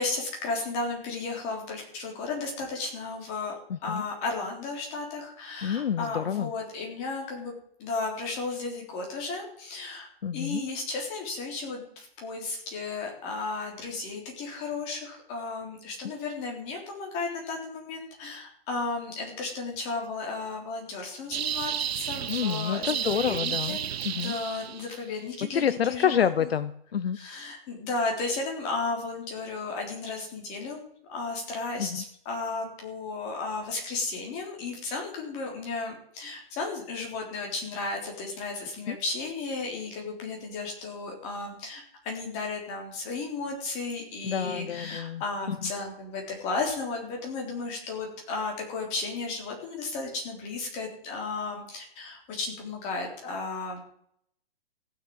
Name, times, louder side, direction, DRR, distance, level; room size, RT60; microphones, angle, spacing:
voice 1, 0.0-3.6 3.8-7.5 7.8-10.1 10.3-23.8 24.1-26.5 27.1-30.8 31.1-53.8, left 3 dB, 20° left, 1 dB, 3.7 m, -34 dB
voice 2, 3.7-4.0 5.6-6.5 10.2-10.6 22.3-23.8 24.0-24.3 25.5-27.2 31.8-32.0 38.9-39.0 44.2-45.2 45.5-45.7, left 8 dB, 75° left, 14 dB, 0.9 m, -28 dB
sound 1, 21.3-25.0, right 9 dB, 90° right, 0.6 m, -32 dB
15.0 x 6.7 x 8.8 m, 0.68 s
hypercardioid pair, 165°, 30 cm